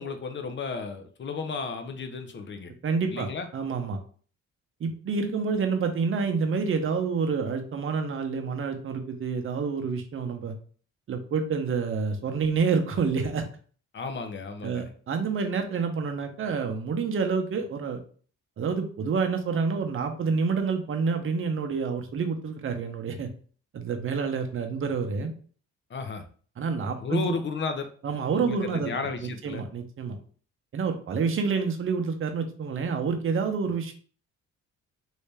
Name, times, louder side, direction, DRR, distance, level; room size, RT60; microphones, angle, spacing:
voice 1, 0.0-2.7 3.1-3.5 13.9-14.9 25.9-26.2 27.0-27.9 28.3-29.6, left 4 dB, 40° left, 7 dB, 0.7 m, -33 dB
voice 2, 2.8-3.3 3.5-4.0 4.8-10.5 11.1-13.4 14.6-18.0 18.6-23.3 23.7-25.3 26.6-27.4 28.0-28.9 29.2-30.2 30.7-33.9, right 5 dB, 45° right, 5 dB, 0.7 m, -28 dB
3.2 x 2.7 x 3.3 m, 0.43 s
cardioid pair, 90°, 30 cm